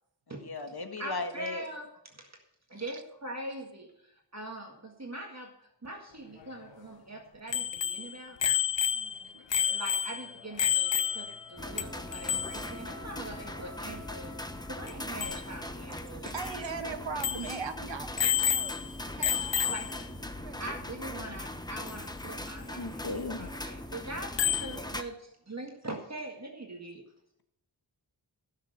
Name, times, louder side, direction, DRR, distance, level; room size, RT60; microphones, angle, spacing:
voice 1, 0.3-1.6 22.8-23.5, left 3 dB, 55° left, 7 dB, 1.5 m, -36 dB
voice 2, 1.0-2.3 2.7-3.9 4.3-8.4 9.7-14.3 14.7-16.3 19.7-19.9 20.6-27.0, right 1 dB, 35° right, 1 dB, 1.8 m, -42 dB
Bicycle bell, 7.5-11.5 11.8-11.9 12.1-12.6 14.9-15.0 15.2-15.4 16.0-16.1 16.5-16.6 17.2-17.6 18.2-18.9 19.2-20.0 21.9-22.0 24.4-24.8, left 9 dB, 70° left, 0.9 m, -29 dB
voice 3, 8.9-9.4 11.3-11.4 11.8-11.9 15.9-20.1 20.4-20.7 21.1-21.5, right 5 dB, 75° right, 6 dB, 1.5 m, -41 dB
sound 1, 10.8-15.3, left 3 dB, 90° left, 2.3 m, -51 dB
sound 2, 11.6-25.0, left 1 dB, 10° left, 1.0 m, -40 dB
16.5 x 6.7 x 6.5 m, 0.79 s
wide cardioid pair, 95°, 45 cm